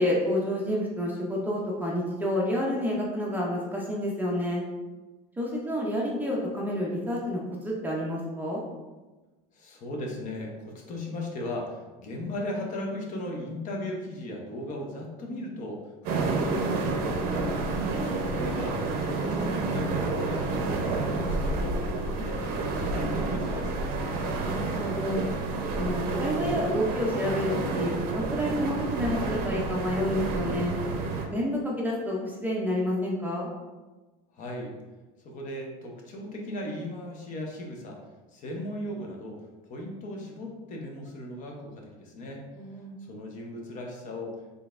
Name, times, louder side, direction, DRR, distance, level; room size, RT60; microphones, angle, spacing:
voice 1, 0.0-4.6 5.4-8.6 17.7-18.1 24.4-25.2 25.7-30.7 31.3-33.5 42.5-43.0, equal, 10° right, -3 dB, 0.5 m, -29 dB
voice 2, 9.5-17.5 18.1-23.8 34.3-34.7 35.2-38.0 38.3-42.4 43.0-44.4, left 1 dB, 40° left, 0 dB, 0.7 m, -37 dB
sound 1, 16.0-31.3, right 3 dB, 55° right, 0.6 m, -29 dB
3.9 x 3.3 x 2.4 m, 1.2 s
cardioid pair, 135°, 19 cm